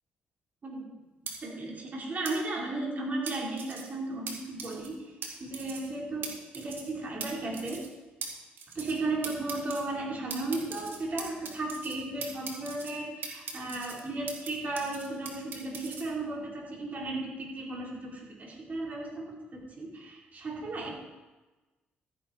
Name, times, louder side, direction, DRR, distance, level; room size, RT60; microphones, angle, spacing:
sound 1, 1.3-1.4 2.2-2.3 3.3-3.8 4.3-4.4 4.6-4.9 5.2-5.3 5.5-5.9 6.2-6.3 6.5-6.9 7.2-7.3 7.5-7.9 8.2-8.3 8.6-9.0 9.2-9.8 10.3-12.0 12.2-12.9 13.2-14.5 14.8-16.0, right 6 dB, 65° right, 2.5 m, -39 dB
voice 1, 1.4-5.1 5.4-7.8 8.7-21.0, right 2 dB, 40° right, -2 dB, 4.3 m, -35 dB
13.5 x 10.0 x 4.4 m, 1.2 s
cardioid pair, 75°, 4 cm